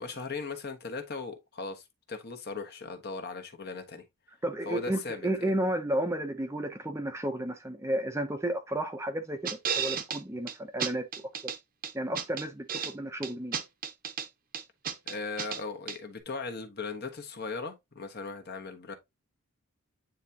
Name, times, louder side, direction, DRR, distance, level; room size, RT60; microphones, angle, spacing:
voice 1, 0.0-4.0 4.6-5.5 15.0-18.9, left 4 dB, 45° left, 1.3 m, -38 dB
voice 2, 4.4-11.0 11.4-11.5 11.9-13.6, right 1 dB, 10° right, 0.7 m, -32 dB
sound 1, 9.5-10.2 10.5-10.6 10.8-11.6 11.8-12.9 13.2-14.3 14.5-15.6 15.9-16.0, right 7 dB, 40° right, 0.9 m, -33 dB
9.3 x 3.5 x 2.8 m
head